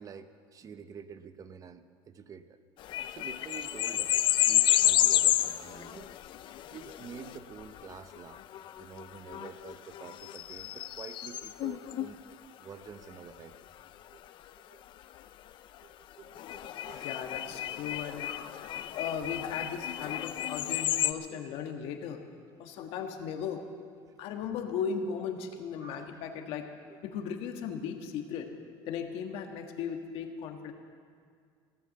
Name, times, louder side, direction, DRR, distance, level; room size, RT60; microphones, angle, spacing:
voice 1, 0.0-2.6 3.1-4.2 4.5-6.2 6.7-8.4 8.8-12.2 12.6-13.5 14.1-14.2 14.7-14.8 15.8-17.2 18.7-18.9 21.3-21.4 24.0-24.1 25.8-26.1, right 6 dB, 35° right, 10 dB, 0.9 m, -48 dB
sound 1, 2.8-12.1 16.4-21.1, left 13 dB, 55° left, 0.5 m, -30 dB
voice 2, 16.9-18.3 18.9-22.2 22.6-23.6 24.2-26.6 27.0-28.5 28.9-30.7, left 7 dB, 75° left, 4 dB, 1.6 m, -37 dB
17.0 x 10.5 x 7.8 m, 2.1 s
cardioid pair, 125°, 10 cm